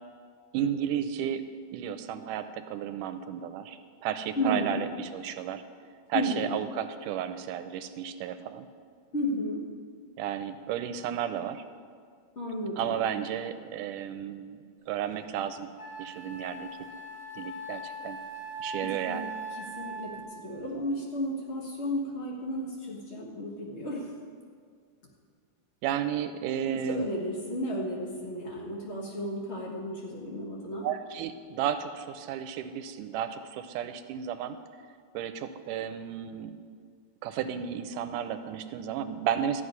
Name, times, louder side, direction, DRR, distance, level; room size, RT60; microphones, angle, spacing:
voice 1, 0.5-1.4 1.7-5.6 6.1-8.7 10.2-11.6 12.8-15.7 16.0-16.9 17.3-18.2 18.6-19.3 25.8-27.0 30.8-34.6 35.1-36.6 37.2-39.6, right 9 dB, 80° right, 10 dB, 2.1 m, -33 dB
voice 2, 4.4-4.8 6.1-6.6 9.1-9.7 12.3-13.0 18.8-19.2 19.5-24.2 26.7-30.9, equal, 85° left, -3 dB, 0.6 m, -33 dB
Wind instrument woodwind instrument, 15.1-15.2 15.8-20.4, right 2 dB, 40° left, 2.8 m, -40 dB
13.5 x 6.3 x 9.5 m, 2.1 s
omnidirectional pair, 3.8 m